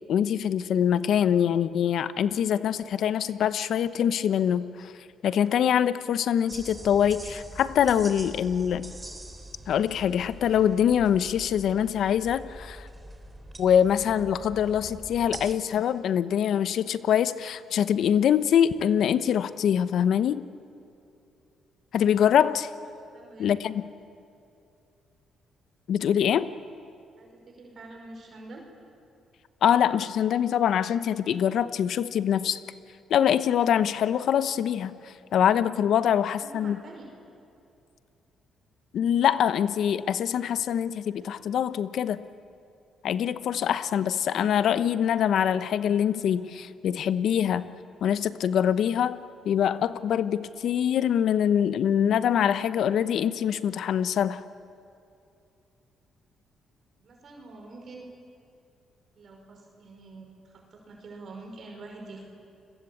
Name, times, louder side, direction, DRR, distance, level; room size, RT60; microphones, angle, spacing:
voice 1, 0.1-4.9 5.2-8.9 9.7-12.9 13.6-20.4 21.9-22.7 23.4-23.8 25.9-26.5 29.6-32.6 33.1-36.8 38.9-42.2 43.0-47.7 48.0-49.2 49.4-54.4, left 9 dB, 70° left, 14 dB, 0.9 m, -24 dB
sound 1, 6.5-15.5, right 1 dB, 20° right, 3.5 m, -44 dB
voice 2, 23.1-23.5 27.2-28.6 36.1-37.1 57.0-58.1 59.2-62.2, right 2 dB, 55° right, 1 dB, 5.2 m, -46 dB
30.0 x 21.5 x 8.6 m, 2.6 s
cardioid pair, 90°, 0 cm